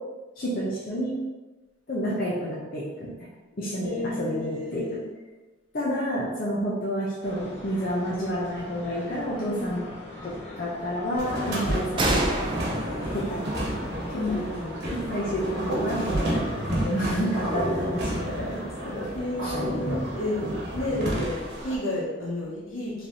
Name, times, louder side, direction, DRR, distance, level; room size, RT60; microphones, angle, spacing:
voice 1, 0.4-1.1 1.9-3.1 3.6-4.8 5.7-9.8 10.2-12.2 13.1-13.4 14.1-14.4 14.9-19.1 19.4-19.5, equal, 45° left, -6 dB, 0.7 m, -30 dB
voice 2, 3.8-5.0 9.5-9.8 14.1-14.7 19.1-23.1, left 2 dB, 80° left, -6 dB, 1.4 m, -31 dB
sound 1, 7.2-20.5, left 2 dB, 30° left, 1.2 m, -41 dB
sound 2, 11.2-21.8, right 1 dB, 55° right, 1.2 m, -31 dB
sound 3, 12.0-15.5, right 2 dB, 25° right, 0.4 m, -30 dB
4.9 x 3.3 x 2.7 m, 1.2 s
head